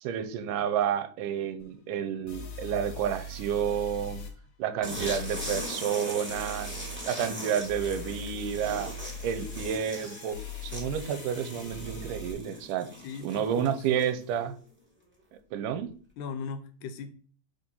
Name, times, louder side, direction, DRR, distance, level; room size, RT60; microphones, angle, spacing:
voice 1, 0.0-4.2 4.6-6.8 7.1-8.9 9.2-12.9 13.2-14.6 15.5-15.9, right 8 dB, 90° right, 2.2 m, -30 dB
sound 1, 1.6-1.7 2.3-4.3 4.9-5.6 6.3-7.0 7.6-12.3, left 3 dB, 60° left, 1.7 m, -41 dB
sound 2, 4.8-14.3, equal, 5° right, 1.5 m, -40 dB
voice 2, 13.0-13.8 16.2-17.1, left 5 dB, 80° left, 2.1 m, -38 dB
4.9 x 3.8 x 5.4 m
omnidirectional pair, 3.7 m